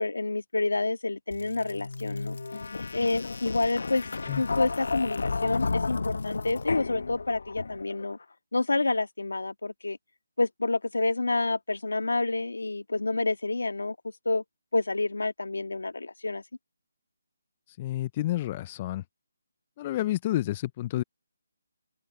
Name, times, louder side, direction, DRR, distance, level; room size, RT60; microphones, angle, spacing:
voice 1, 0.0-2.4 2.9-4.0 4.4-8.2 8.5-10.0 10.4-13.9 14.2-14.4 14.7-16.4, left 2 dB, 85° left, 1.6 m, -28 dB
sound 1, 1.3-8.0, left 4 dB, 70° left, 0.9 m, -32 dB
voice 2, 17.8-19.0 19.8-21.0, left 14 dB, 25° left, 0.3 m, -29 dB
open air
figure-of-eight pair, 160°, 0 cm